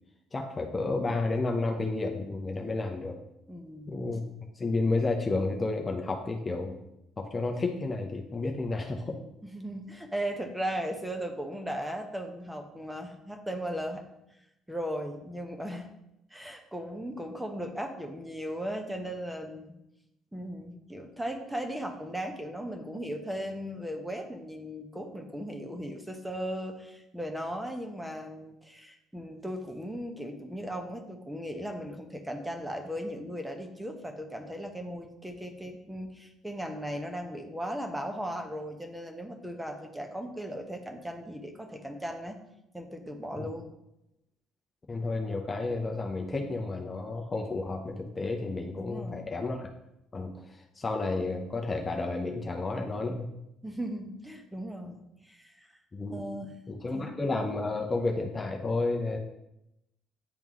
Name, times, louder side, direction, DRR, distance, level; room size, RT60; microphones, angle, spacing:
voice 1, 0.3-3.2 3.9-4.2 4.6-6.8 7.2-9.2 43.4-43.5 44.9-49.7 50.1-50.4 50.8-53.2 55.9-56.2 56.7-59.2, left 3 dB, 30° left, 2 dB, 0.8 m, -31 dB
voice 2, 3.5-4.0 9.4-14.0 14.7-15.9 16.3-19.8 20.3-42.4 42.7-43.7 48.8-49.3 53.6-55.5 56.1-56.6 56.9-57.1, equal, 5° right, 3 dB, 1.0 m, -37 dB
9.4 x 3.5 x 3.1 m, 0.87 s
figure-of-eight pair, 50°, 0 cm